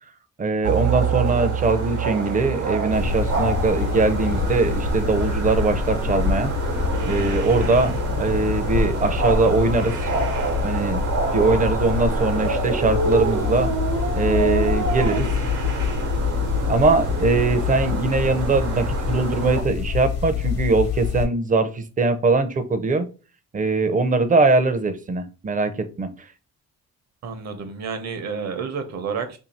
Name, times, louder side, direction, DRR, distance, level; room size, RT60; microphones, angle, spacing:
voice 1, 0.4-6.5 7.0-10.0 10.6-11.0 11.3-13.7 14.1-15.3 16.7-23.1 23.5-26.1, right 3 dB, 25° right, 9 dB, 0.6 m, -21 dB
sound 1, 0.6-19.6, right 5 dB, 80° right, 1.1 m, -27 dB
sound 2, 2.9-21.3, left 6 dB, 60° left, 1.0 m, -26 dB
voice 2, 27.2-29.4, right 5 dB, 60° right, 7 dB, 0.8 m, -30 dB
2.7 x 2.7 x 4.1 m, 0.34 s
cardioid pair, 90°, 30 cm